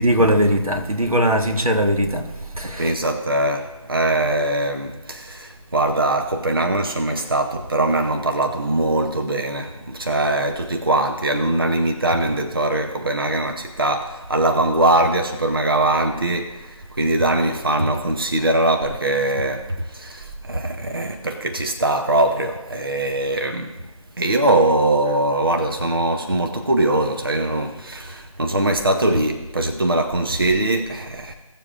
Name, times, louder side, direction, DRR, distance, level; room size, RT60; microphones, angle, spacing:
voice 1, 0.0-2.3 2.6-2.9, equal, 85° right, 1.4 m, -19 dB
voice 2, 2.8-23.7 24.2-31.3, right 1 dB, 40° right, 0.7 m, -21 dB
17.0 x 7.1 x 2.5 m
figure-of-eight pair, 165°, 18 cm